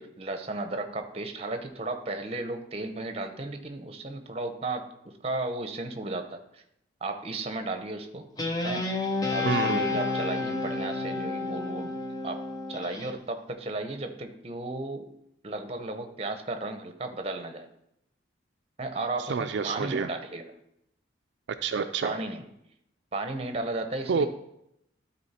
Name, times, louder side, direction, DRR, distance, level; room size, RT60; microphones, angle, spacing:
voice 1, 0.0-4.9 5.2-6.6 7.0-8.2 8.6-8.9 9.3-11.9 12.2-15.1 15.4-17.7 18.8-20.5 22.0-22.4 23.1-24.3, right 2 dB, 30° right, 7 dB, 0.7 m, -34 dB
Guitar, 8.4-13.1, left 3 dB, 20° left, 0.7 m, -30 dB
voice 2, 9.4-10.0 19.2-20.1 21.6-22.1 24.1-24.3, right 5 dB, 70° right, 6 dB, 0.4 m, -28 dB
12.0 x 4.3 x 4.2 m, 0.79 s
head